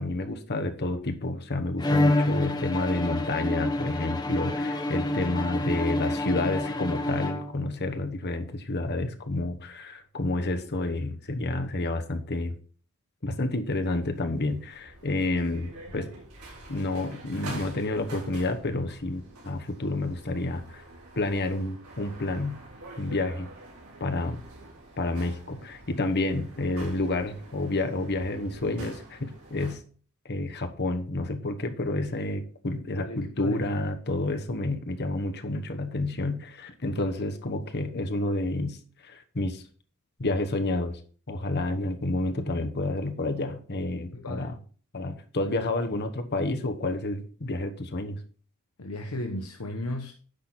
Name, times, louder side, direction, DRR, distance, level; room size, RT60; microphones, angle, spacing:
voice 1, 0.0-12.6 13.2-16.1 16.7-20.8 21.2-22.6 23.0-23.5 24.0-24.4 25.0-29.8 30.2-38.8 39.0-39.6 40.2-41.0 41.3-44.6 44.9-48.2, left 2 dB, 50° left, 1.1 m, -29 dB
Bowed string instrument, 1.8-7.8, left 1 dB, 20° left, 1.0 m, -28 dB
sound 1, 14.2-29.7, right 2 dB, 90° right, 4.1 m, -46 dB
voice 2, 32.9-33.6 44.1-44.6 48.8-50.1, left 1 dB, 90° left, 1.0 m, -35 dB
10.0 x 6.4 x 4.2 m
head